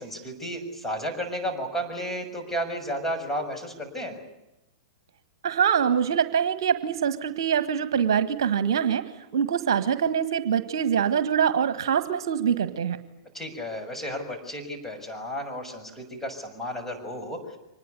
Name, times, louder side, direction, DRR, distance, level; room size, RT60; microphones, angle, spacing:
voice 1, 0.0-4.2 13.3-17.6, equal, 10° left, 3 dB, 6.8 m, -33 dB
voice 2, 5.4-13.0, right 8 dB, 55° right, 12 dB, 1.6 m, -24 dB
25.0 x 20.5 x 9.7 m, 0.93 s
figure-of-eight pair, 100°, 3 cm